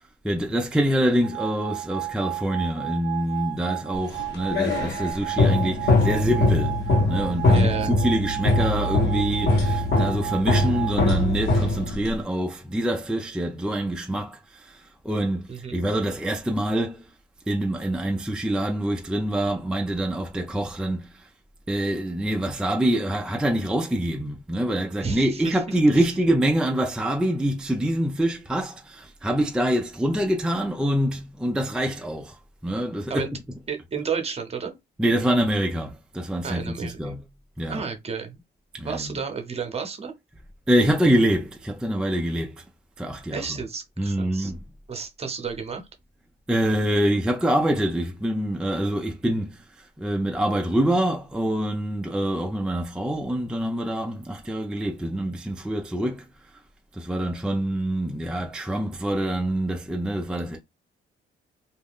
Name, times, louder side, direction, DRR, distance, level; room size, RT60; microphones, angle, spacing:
voice 1, 0.2-17.1 17.5-21.3 21.7-33.3 35.0-37.2 37.6-37.8 38.7-39.2 40.7-42.6 43.0-43.6 44.0-44.6 46.5-56.3 56.9-60.6, right 1 dB, 5° right, 0.3 m, -25 dB
sound 1, 1.2-10.9, right 17 dB, 80° right, 0.4 m, -33 dB
sound 2, 4.1-12.2, left 2 dB, 55° left, 1.1 m, -22 dB
voice 2, 7.5-7.9 15.5-15.8 25.0-25.6 25.9-26.1 33.1-33.3 33.7-34.8 36.4-37.2 37.7-38.4 38.8-40.1 43.3-44.5 44.9-45.9, right 6 dB, 30° right, 0.7 m, -32 dB
2.3 x 2.1 x 3.4 m
cardioid pair, 90°, 20 cm